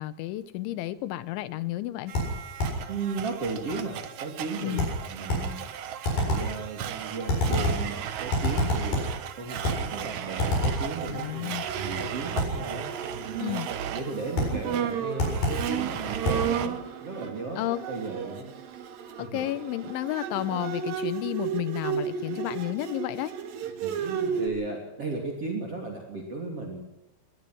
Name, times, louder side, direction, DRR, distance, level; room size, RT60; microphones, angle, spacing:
voice 1, 0.0-2.1 4.6-4.9 11.1-11.6 13.4-13.7 17.6-17.8 19.2-23.3, left 15 dB, 85° left, 15 dB, 3.4 m, -32 dB
Domestic sounds home sounds, 2.1-16.7, right 9 dB, 85° right, 1.6 m, -37 dB
sound 1, 2.2-2.9 4.8-5.6 6.0-6.6 7.3-7.9 8.3-9.2 9.6-9.9 10.4-10.9 12.4-12.6 14.4-14.6 15.2-15.7 16.3-16.5, left 1 dB, 45° left, 9.1 m, -27 dB
voice 2, 2.9-5.6 6.1-11.5 11.8-12.9 13.2-17.6 17.9-18.5 19.2-19.4 23.8-26.8, right 3 dB, 35° right, 1 dB, 3.5 m, -35 dB
Bowed string instrument, 11.5-24.5, right 8 dB, 60° right, 3.3 m, -33 dB
20.5 x 20.0 x 6.3 m, 0.93 s
omnidirectional pair, 5.3 m